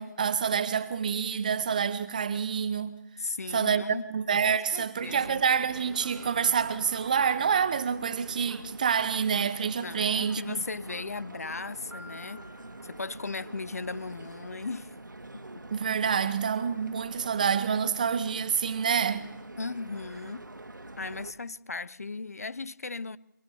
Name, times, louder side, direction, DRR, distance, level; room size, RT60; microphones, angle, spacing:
voice 1, 0.0-3.0 3.5-10.6 15.7-19.3, right 7 dB, 25° right, 1.0 m, -27 dB
voice 2, 3.2-4.1 4.4-5.4 9.8-12.4 12.8-14.9 15.3-15.6 19.6-20.4 21.0-23.2, left 3 dB, 50° left, 0.8 m, -37 dB
sound 1, 5.0-21.3, right 2 dB, 75° right, 2.3 m, -45 dB
Piano, 11.9-13.8, left 1 dB, 85° left, 6.0 m, -51 dB
25.5 x 24.0 x 7.1 m
figure-of-eight pair, 160°, 10 cm